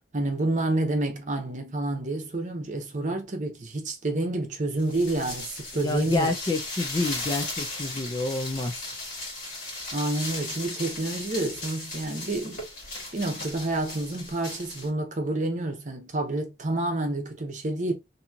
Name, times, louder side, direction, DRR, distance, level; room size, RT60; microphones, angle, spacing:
voice 1, 0.0-6.3 9.9-12.6 13.1-17.9, right 2 dB, 45° right, 0.8 m, -29 dB
sound 1, 4.8-14.9, left 2 dB, 50° left, 1.6 m, -36 dB
voice 2, 5.7-8.8, left 2 dB, 25° left, 0.4 m, -28 dB
2.9 x 2.7 x 2.3 m
head